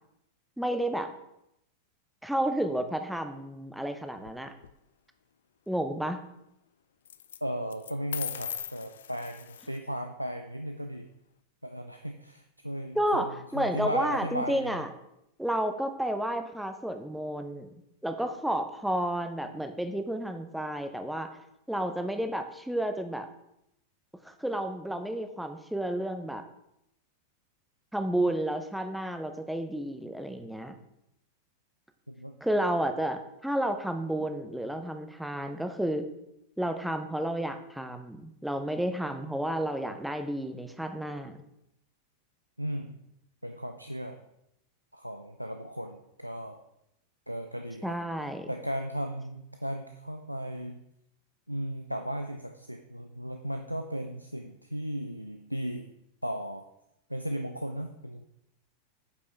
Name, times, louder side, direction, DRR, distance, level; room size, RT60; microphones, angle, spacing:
voice 1, 0.6-1.1 2.2-4.5 5.7-6.2 12.9-14.9 15.4-17.7 18.0-21.3 21.7-23.3 24.2-26.4 27.9-30.8 32.4-36.1 36.6-41.4 47.8-48.5, right 1 dB, ahead, 7 dB, 0.6 m, -31 dB
sound 1, 4.2-4.7 7.0-7.4 7.7-9.8, left 9 dB, 65° left, 0.3 m, -39 dB
voice 2, 7.4-11.1 11.6-14.8 32.1-32.4 42.6-43.0 43.4-44.2 44.9-46.6 47.3-48.0 48.5-50.8 51.5-55.9 56.2-56.6 57.1-58.3, equal, 90° right, 5 dB, 0.4 m, -36 dB
8.5 x 5.2 x 3.4 m, 0.82 s
figure-of-eight pair, 90°, 0 cm